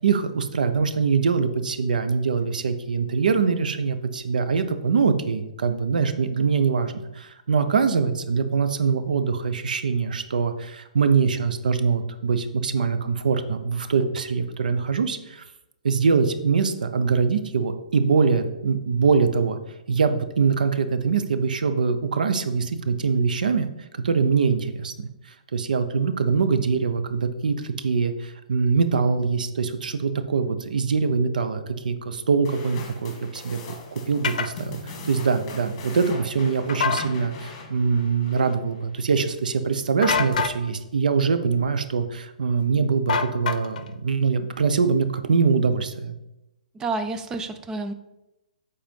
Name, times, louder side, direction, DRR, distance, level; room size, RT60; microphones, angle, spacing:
voice 1, 0.0-15.4 15.8-19.6 19.9-33.6 33.9-46.1, right 5 dB, 80° right, 9 dB, 0.9 m, -23 dB
sound 1, 32.4-39.0, left 3 dB, 35° left, 1.9 m, -41 dB
sound 2, 34.2-34.5 36.7-37.1 40.0-40.6 43.1-43.9, left 6 dB, 65° left, 0.7 m, -25 dB
voice 2, 46.7-47.9, right 3 dB, 15° right, 8 dB, 0.5 m, -29 dB
7.7 x 4.3 x 5.3 m, 0.92 s
hypercardioid pair, 145°, 4 cm